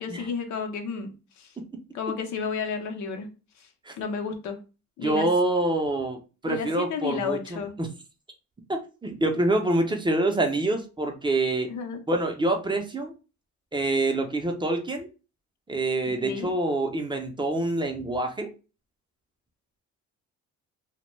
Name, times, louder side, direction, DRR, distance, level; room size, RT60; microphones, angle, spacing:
voice 1, 0.0-1.5 1.9-3.3 4.0-4.6 5.0-5.3 6.4-7.7 11.7-12.0 16.2-16.5, left 5 dB, 70° left, 5 dB, 0.6 m, -32 dB
voice 2, 5.0-7.9 8.7-11.7 12.1-13.1 13.7-15.1 15.7-18.5, right 2 dB, 15° right, 3 dB, 0.5 m, -26 dB
2.1 x 2.1 x 3.1 m, 0.33 s
cardioid pair, 90°, 30 cm